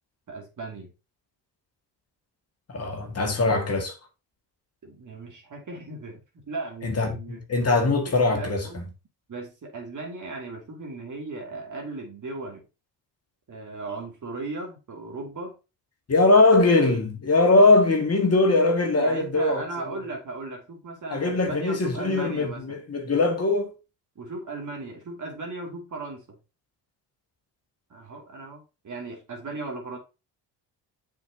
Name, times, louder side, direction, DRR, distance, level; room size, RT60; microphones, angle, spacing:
voice 1, 0.3-0.9 3.0-3.7 4.8-7.4 7.9-8.8 9.3-12.6 13.5-15.5 19.0-22.8 24.2-26.4 27.9-30.0, right 3 dB, 45° right, 2.7 m, -37 dB
voice 2, 2.7-4.0 6.8-8.8 16.1-20.0 21.1-23.7, left 2 dB, 35° left, 2.1 m, -21 dB
7.1 x 5.7 x 2.9 m
cardioid pair, 80°, 43 cm